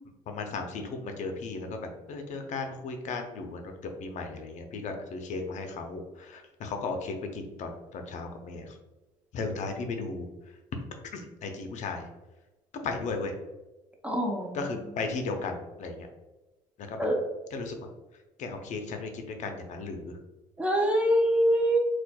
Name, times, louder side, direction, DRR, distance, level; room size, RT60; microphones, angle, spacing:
voice 1, 0.3-8.8 9.3-10.3 11.1-12.1 12.8-13.4 14.5-16.1 16.8-17.0 17.5-17.8 18.4-20.2, left 3 dB, 60° left, 4 dB, 0.5 m, -35 dB
voice 2, 14.0-14.7 17.0-17.2 20.6-21.8, equal, 10° right, 1 dB, 0.6 m, -24 dB
4.1 x 2.2 x 2.2 m, 1.1 s
cardioid pair, 95°, 14 cm